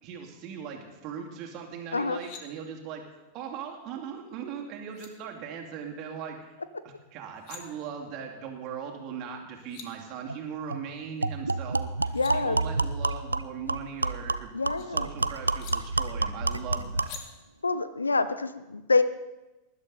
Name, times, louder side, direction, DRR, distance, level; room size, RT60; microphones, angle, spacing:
voice 1, 0.0-3.0 3.3-14.5 14.8-17.2, right 7 dB, 40° right, 1 dB, 2.6 m, -39 dB
sound 1, 1.9-2.4 4.5-4.6 4.9-5.1 7.2-7.6 9.3-9.4 9.5-9.9 11.8-12.3 13.8-14.9 15.6-15.7 17.0-17.2, left 8 dB, 45° left, 1.8 m, -46 dB
sound 2, 10.3-10.4 10.7-10.8 11.2-17.2, right 3 dB, 80° right, 0.4 m, -29 dB
voice 2, 12.1-12.6 14.5-15.1 17.6-19.0, left 3 dB, 80° left, 13 dB, 0.7 m, -26 dB
19.5 x 11.5 x 4.1 m, 1.0 s
figure-of-eight pair, 90°, 0 cm